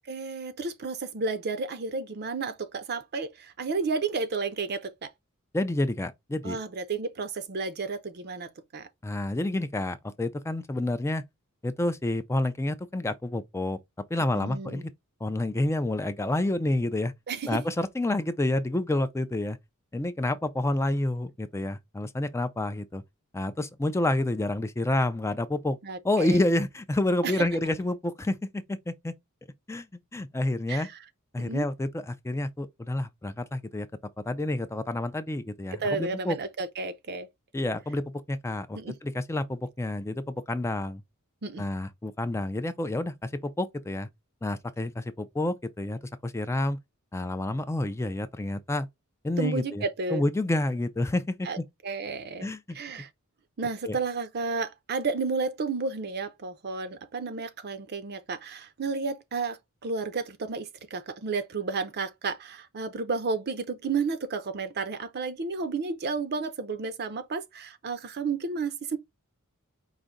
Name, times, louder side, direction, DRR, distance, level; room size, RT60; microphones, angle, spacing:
voice 1, 0.1-5.1 6.4-8.9 14.3-14.8 17.3-17.6 25.8-26.4 27.2-27.5 30.7-30.9 31.4-31.7 35.8-37.3 38.8-39.0 41.4-41.6 49.4-50.2 51.4-51.6 51.8-52.5 52.7-53.1 53.6-69.0, right 4 dB, 50° right, 0.6 m, -32 dB
voice 2, 5.5-6.6 9.0-11.2 11.6-13.8 14.1-14.9 15.2-17.1 17.5-19.6 19.9-23.0 23.3-25.8 26.0-29.1 29.7-29.9 30.1-30.9 31.3-33.9 34.3-36.4 37.5-41.0 41.6-44.1 44.4-46.8 47.1-48.9 49.2-51.6 52.4-53.0 53.9-54.0, left 1 dB, 10° left, 0.4 m, -29 dB
4.9 x 2.6 x 3.8 m
head